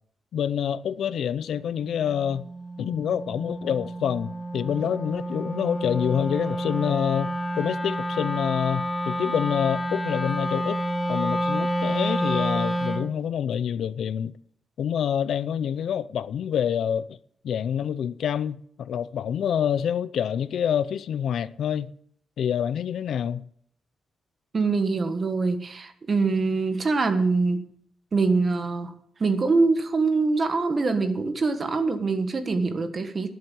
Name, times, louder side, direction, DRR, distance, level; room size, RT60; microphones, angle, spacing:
voice 1, 0.3-2.5 2.8-10.8 11.1-14.3 14.8-17.2 17.4-21.9 22.4-23.4, left 8 dB, 75° left, 0.5 m, -27 dB
Wind instrument woodwind instrument, 1.5-13.1, right 1 dB, 10° left, 1.4 m, -29 dB
voice 2, 24.5-27.6 28.1-28.9 29.2-33.3, right 3 dB, 35° right, 1.5 m, -24 dB
11.0 x 7.7 x 8.6 m
wide cardioid pair, 135°, 0 cm